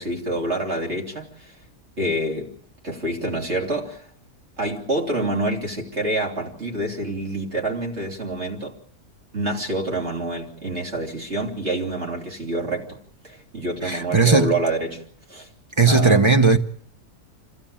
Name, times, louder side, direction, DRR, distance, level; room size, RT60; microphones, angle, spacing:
voice 1, 0.0-1.6 2.0-2.5 2.8-4.0 4.6-8.7 9.3-15.0 15.3-15.5 15.9-16.2, right 2 dB, 45° right, 3.4 m, -27 dB
voice 2, 13.8-14.5 15.8-16.6, right 4 dB, 20° right, 1.0 m, -16 dB
26.0 x 15.5 x 8.9 m
omnidirectional pair, 1.6 m